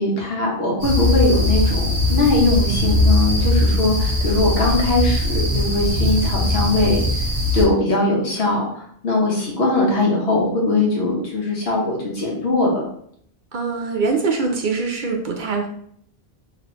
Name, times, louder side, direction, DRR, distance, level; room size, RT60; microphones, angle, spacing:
voice 1, 0.0-7.0 7.5-12.8, left 2 dB, 75° left, -3 dB, 1.3 m, -20 dB
sound 1, 0.8-7.6, left 1 dB, 50° left, 1.4 m, -20 dB
voice 2, 13.5-15.7, right 4 dB, 60° right, 2 dB, 0.7 m, -23 dB
3.0 x 2.9 x 3.0 m, 0.65 s
omnidirectional pair, 1.0 m